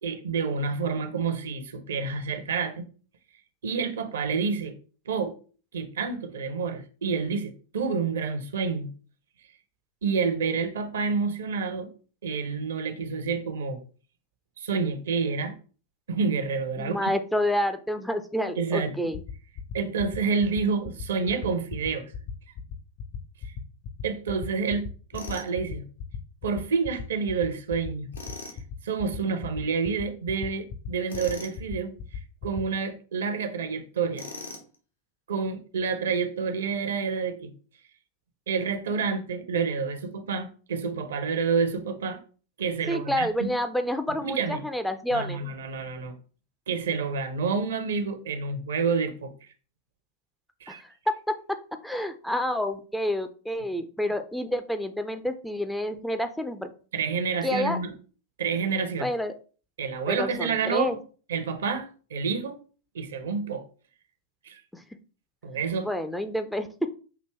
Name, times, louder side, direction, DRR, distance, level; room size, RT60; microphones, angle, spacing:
voice 1, 0.0-2.8 3.6-4.8 5.1-5.4 5.7-8.9 10.0-11.9 12.2-13.8 14.6-15.5 16.1-17.1 18.6-18.9 19.7-22.1 24.0-24.8 25.1-25.9 26.4-28.1 28.8-31.9 32.4-34.3 35.3-37.5 38.5-42.2 42.6-43.5 44.2-44.6 45.1-46.1 46.7-49.3 50.6-50.8 56.9-57.9 58.4-59.1 59.8-61.0 61.3-62.6 62.9-63.6 64.4-64.6 65.4-65.9, right 5 dB, 65° right, 0.7 m, -28 dB
voice 2, 16.8-19.2 42.9-45.4 50.7-50.8 51.1-56.7 57.4-57.8 59.0-59.3 60.1-61.0 64.7-64.8 65.8-66.9, left 1 dB, ahead, 0.4 m, -29 dB
sound 1, 19.1-32.6, left 6 dB, 40° left, 0.6 m, -36 dB
Tools, 25.1-25.5 28.1-28.6 31.1-31.6 34.1-34.7, left 3 dB, 75° left, 1.0 m, -40 dB
5.9 x 2.7 x 3.3 m
figure-of-eight pair, 90°, 0 cm